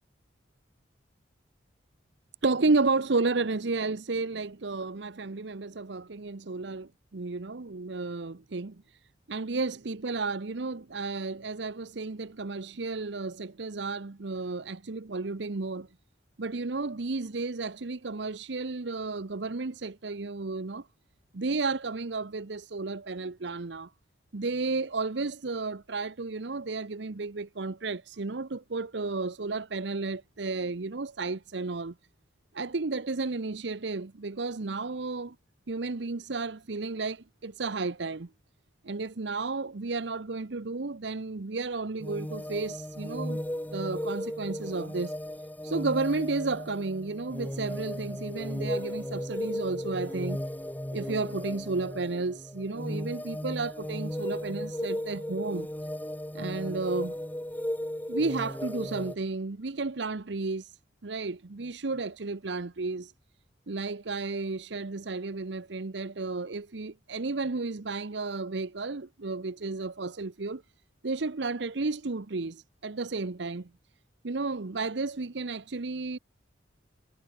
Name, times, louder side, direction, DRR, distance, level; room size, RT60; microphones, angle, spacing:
voice 1, 2.4-9.0 9.3-15.9 16.4-20.9 21.3-23.9 24.3-31.9 32.5-35.3 35.7-38.3 38.8-43.4 43.7-45.1 45.6-50.4 50.9-55.7 56.3-57.2 58.1-63.1 63.7-70.6 71.0-73.7 74.2-76.2, right 3 dB, 65° right, 0.8 m, -32 dB
sound 1, 42.0-59.2, equal, 10° left, 1.1 m, -35 dB
head